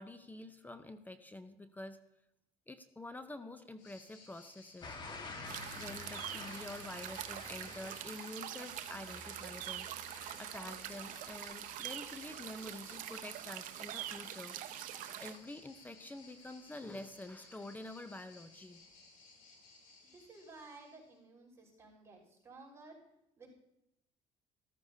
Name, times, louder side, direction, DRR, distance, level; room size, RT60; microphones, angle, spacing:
voice 1, 0.0-2.0 2.7-5.0 5.7-14.9 15.2-18.8, left 2 dB, 10° left, 10 dB, 0.6 m, -48 dB
sound 1, 3.8-21.2, left 3 dB, 70° left, 3.4 m, -59 dB
sound 2, 4.8-15.6 16.1-16.5, left 3 dB, 30° left, 1.5 m, -51 dB
sound 3, 5.5-15.4, right 12 dB, 65° right, 0.7 m, -44 dB
voice 2, 20.1-23.0 23.4-23.5, right 3 dB, 20° right, -3 dB, 5.4 m, -55 dB
13.5 x 13.5 x 2.7 m, 0.84 s
cardioid pair, 110°, 14 cm